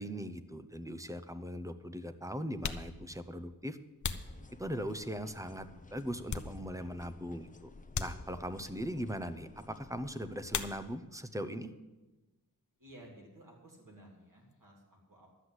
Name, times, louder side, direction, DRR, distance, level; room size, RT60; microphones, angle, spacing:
voice 1, 0.0-3.8 4.6-7.7 8.0-11.7, equal, 10° right, 10 dB, 0.7 m, -40 dB
sound 1, 1.7-1.9 2.4-5.1 5.6-7.0 7.3-7.4 7.9-8.7 10.5-11.3 11.5-12.2 12.5-14.6, left 6 dB, 55° left, 0.8 m, -42 dB
sound 2, 4.3-10.5, left 3 dB, 20° left, 0.7 m, -54 dB
voice 2, 12.8-15.3, right 1 dB, 60° right, -2 dB, 3.2 m, -55 dB
12.0 x 7.8 x 8.0 m, 1.1 s
wide cardioid pair, 115°, 35 cm